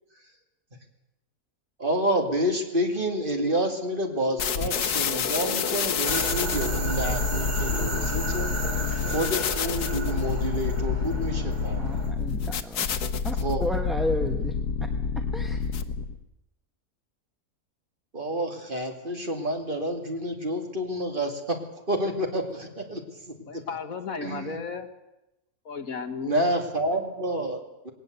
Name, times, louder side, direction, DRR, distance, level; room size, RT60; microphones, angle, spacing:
sound 1, 1.8-11.7 12.2-12.4, left 5 dB, 30° left, 2.8 m, -43 dB
voice 1, 1.8-8.5 9.0-12.0 13.4-13.7 18.1-21.6 21.9-23.6 24.2-24.6 26.2-27.9, equal, 35° right, 3 dB, 2.7 m, -29 dB
sound 2, 4.4-16.2, left 6 dB, 85° left, 1.6 m, -28 dB
sound 3, 6.0-12.1, right 2 dB, 90° right, 4.0 m, -33 dB
voice 2, 11.8-14.5 15.3-15.6, equal, ahead, 4 dB, 1.0 m, -32 dB
voice 3, 23.5-24.9 25.7-26.4, left 4 dB, 65° left, 9 dB, 1.8 m, -34 dB
20.0 x 18.5 x 8.1 m, 0.93 s
omnidirectional pair, 1.6 m